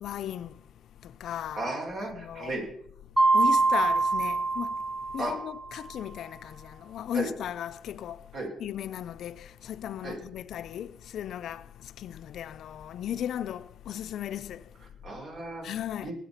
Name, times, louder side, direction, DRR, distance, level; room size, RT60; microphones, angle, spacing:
voice 1, 0.0-1.7 2.1-2.5 3.3-8.3 8.6-14.9 15.6-16.1, left 10 dB, 70° left, 0.6 m, -36 dB
voice 2, 1.6-2.6 5.2-5.3 7.1-7.3 8.3-8.5 10.0-10.2 15.0-15.7 16.0-16.1, right 2 dB, 55° right, 5.8 m, -34 dB
Mallet percussion, 3.2-5.8, right 3 dB, 20° right, 1.8 m, -25 dB
19.5 x 7.5 x 5.8 m
cardioid pair, 90°, 0 cm